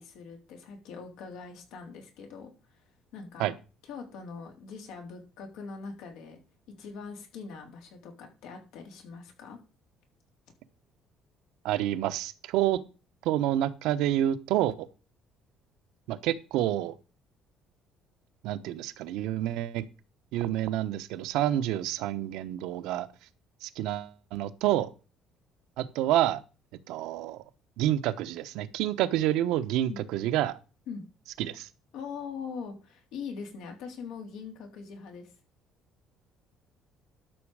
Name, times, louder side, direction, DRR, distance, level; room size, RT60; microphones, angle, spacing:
voice 1, 0.0-2.8 3.1-3.5 3.9-6.4 6.8-9.6 29.9-30.0 30.9-31.0 31.9-35.3, left 5 dB, 85° left, 3 dB, 3.5 m, -42 dB
voice 2, 11.6-12.8 13.2-14.9 16.1-16.9 18.4-19.8 20.3-23.1 23.6-24.9 25.8-26.4 26.9-27.4 27.8-30.5 31.4-31.7, right 13 dB, 85° right, 11 dB, 1.0 m, -28 dB
12.5 x 6.3 x 4.9 m, 0.34 s
cardioid pair, 125°, 0 cm